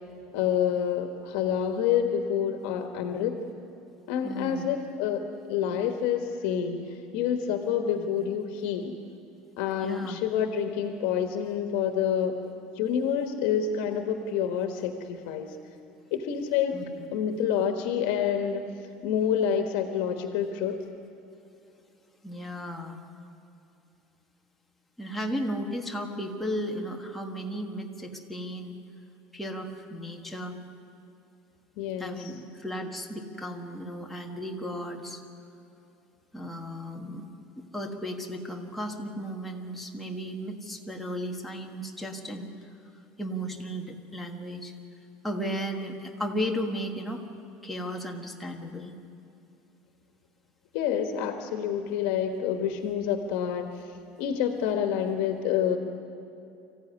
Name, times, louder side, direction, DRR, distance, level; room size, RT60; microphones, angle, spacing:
voice 1, 0.3-3.4 4.1-5.2 5.5-9.0 9.6-12.3 12.7-15.6 16.1-16.8 17.1-18.6 19.0-20.8 31.8-32.3 50.7-53.8 54.2-55.8, left 8 dB, 70° left, 5 dB, 1.5 m, -28 dB
voice 2, 4.2-4.7 8.0-8.1 9.8-10.2 16.7-16.8 22.2-23.0 25.0-28.8 29.3-30.6 32.0-35.2 36.3-37.3 37.6-42.5 43.2-44.7 45.2-47.2 47.6-48.9, equal, 5° left, 0 dB, 1.4 m, -35 dB
25.0 x 15.5 x 9.7 m, 2.7 s
cardioid pair, 175°, 4 cm